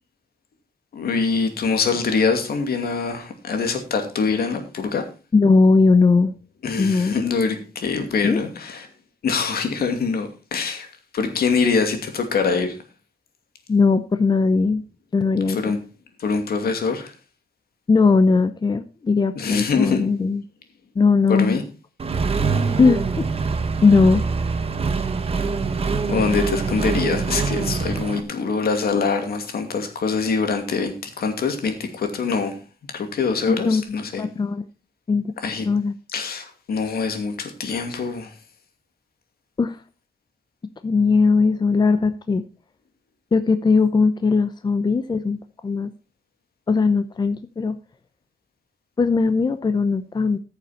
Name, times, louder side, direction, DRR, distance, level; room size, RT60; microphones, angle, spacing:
voice 1, 0.9-5.0 6.6-8.9 9.2-10.9 11.1-12.8 15.5-15.8 16.2-17.1 19.4-20.0 21.3-21.6 26.1-32.6 32.9-34.2 35.4-35.7 36.1-38.3, left 5 dB, 75° left, 2.5 m, -24 dB
voice 2, 5.3-6.4 6.8-7.2 8.2-8.4 13.7-14.8 15.1-15.8 17.9-20.4 21.0-21.6 22.8-23.3 23.8-24.2 33.5-33.8 34.2-34.6 35.1-35.3 35.6-35.9 39.6-39.8 40.8-42.4 43.3-45.9 46.7-47.8 49.0-50.4, left 4 dB, 30° left, 0.7 m, -19 dB
Accelerating revving vroom, 22.0-28.2, right 4 dB, 40° right, 1.3 m, -24 dB
14.5 x 7.0 x 4.3 m
wide cardioid pair, 150°, 16 cm